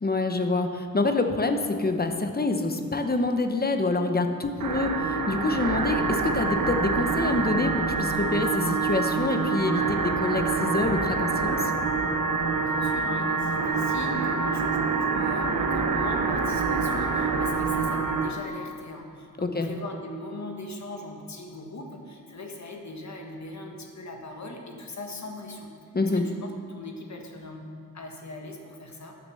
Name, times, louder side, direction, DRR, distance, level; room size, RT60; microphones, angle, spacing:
voice 1, 0.0-11.7 19.4-19.7 25.9-26.2, left 3 dB, 30° left, 6 dB, 0.8 m, -26 dB
sound 1, 4.6-18.3, right 4 dB, 70° right, 0.9 m, -26 dB
voice 2, 12.7-25.7 26.0-29.1, left 2 dB, 55° left, 2 dB, 1.4 m, -40 dB
9.5 x 6.6 x 6.8 m, 2.4 s
wide cardioid pair, 130°, 34 cm